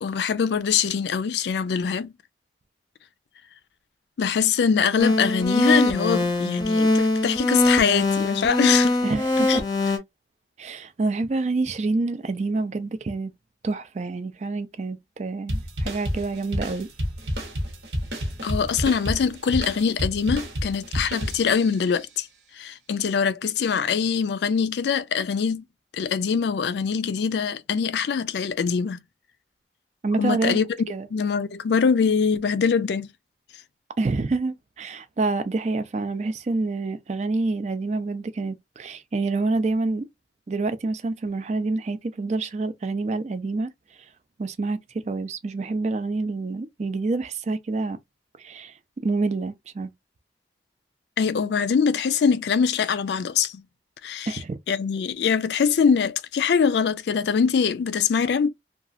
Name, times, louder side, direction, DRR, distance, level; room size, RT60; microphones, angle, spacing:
voice 1, 0.0-2.1 4.2-9.0 9.5-9.6 18.4-22.3 22.5-25.6 25.9-29.0 30.2-30.6 31.1-33.1 51.2-53.6 54.0-54.4 54.7-58.5, left 6 dB, 75° left, 0.4 m, -23 dB
sound 1, 5.0-10.0, left 2 dB, 25° left, 0.6 m, -22 dB
voice 2, 9.0-9.6 10.6-13.3 13.6-16.9 30.0-30.6 30.9-31.1 34.0-40.0 40.5-43.7 44.4-44.8 45.0-48.0 48.4-48.7 49.0-49.9 54.3-54.6, right 3 dB, 40° right, 0.4 m, -27 dB
sound 2, 15.5-21.9, equal, 80° right, 1.0 m, -30 dB
2.9 x 2.3 x 2.5 m
head